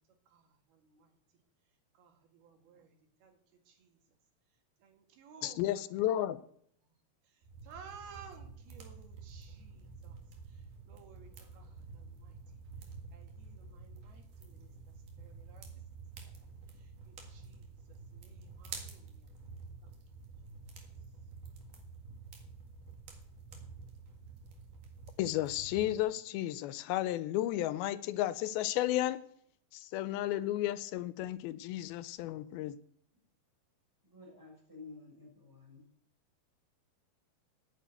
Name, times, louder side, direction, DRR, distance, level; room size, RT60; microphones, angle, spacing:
voice 1, 0.7-1.1 2.0-2.9 3.2-3.3 3.7-3.9 4.8-5.8 7.6-10.2 10.9-12.3 13.1-14.7 15.2-15.7 17.1-17.7 18.1-19.2, right 6 dB, 85° right, 4 dB, 3.9 m, -56 dB
voice 2, 5.4-6.4 25.2-29.2 29.7-32.8, left 14 dB, 85° left, 15 dB, 2.5 m, -33 dB
sound 1, 7.4-26.0, right 4 dB, 60° right, 3.3 m, -50 dB
voice 3, 34.1-35.8, left 3 dB, 5° right, -2 dB, 6.0 m, -52 dB
10.0 x 7.5 x 9.0 m, 0.64 s
omnidirectional pair, 4.3 m